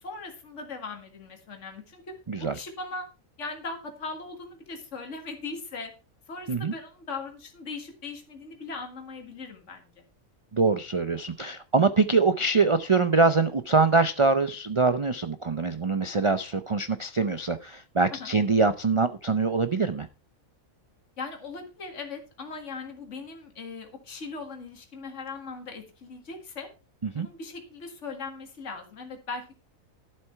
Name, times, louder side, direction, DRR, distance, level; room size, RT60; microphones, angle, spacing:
voice 1, 0.0-3.1 3.4-5.9 6.3-9.9 18.2-18.3 21.2-26.7 27.1-29.5, left 4 dB, 60° left, 4 dB, 2.2 m, -39 dB
voice 2, 2.3-2.6 6.5-6.7 10.5-20.1 27.0-27.3, right 4 dB, 50° right, 11 dB, 0.3 m, -24 dB
12.0 x 7.7 x 4.5 m, 0.32 s
omnidirectional pair, 1.4 m